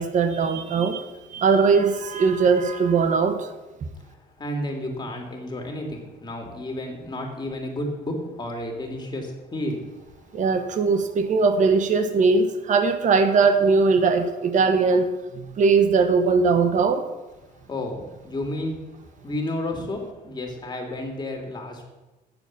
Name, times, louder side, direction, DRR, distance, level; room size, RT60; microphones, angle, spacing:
voice 1, 0.0-3.5 10.3-17.0, right 4 dB, 45° right, 9 dB, 1.2 m, -20 dB
voice 2, 4.0-10.0 17.7-18.8 19.2-21.8, left 1 dB, 25° left, 2 dB, 2.4 m, -31 dB
9.8 x 7.1 x 7.2 m, 1.1 s
cardioid pair, 110°, 17 cm